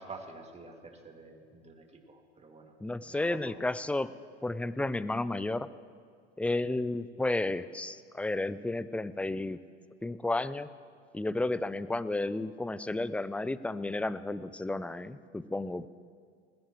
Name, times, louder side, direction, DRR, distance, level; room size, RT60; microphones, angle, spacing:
voice 1, 0.0-2.8 3.1-3.7, right 3 dB, 20° right, 2 dB, 2.2 m, -48 dB
voice 2, 2.8-4.1 4.4-5.7 6.4-9.6 10.0-10.7 11.1-15.9, left 2 dB, 5° left, 15 dB, 0.3 m, -32 dB
20.5 x 16.0 x 3.1 m, 2.1 s
hypercardioid pair, 85°, 35 cm